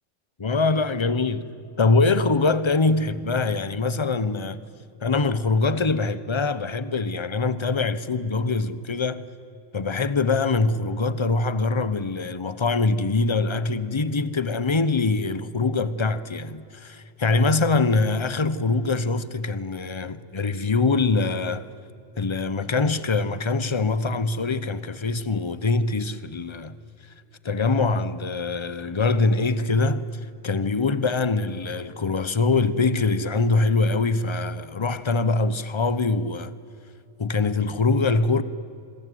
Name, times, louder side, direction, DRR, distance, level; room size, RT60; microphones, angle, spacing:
voice 1, 0.4-1.5 1.8-4.6 5.0-9.3 9.7-21.7 22.2-26.8 27.4-30.1 30.4-36.5 37.2-38.4, left 3 dB, 25° left, 0.9 m, -23 dB
27.0 x 22.0 x 9.3 m
omnidirectional pair, 1.3 m